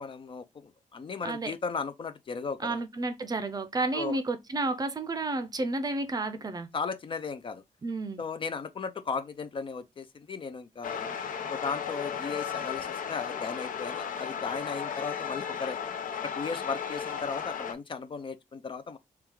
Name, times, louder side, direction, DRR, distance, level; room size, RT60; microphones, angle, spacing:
voice 1, 0.0-2.8 3.9-4.2 6.7-7.6 8.2-11.1 11.5-15.8 16.2-19.0, left 5 dB, 40° left, 0.4 m, -36 dB
voice 2, 1.2-1.5 2.6-6.7 7.8-8.2, right 2 dB, 25° right, 0.5 m, -31 dB
sound 1, 10.8-17.7, left 7 dB, 75° left, 0.7 m, -35 dB
3.5 x 2.3 x 4.5 m
wide cardioid pair, 150°, 14 cm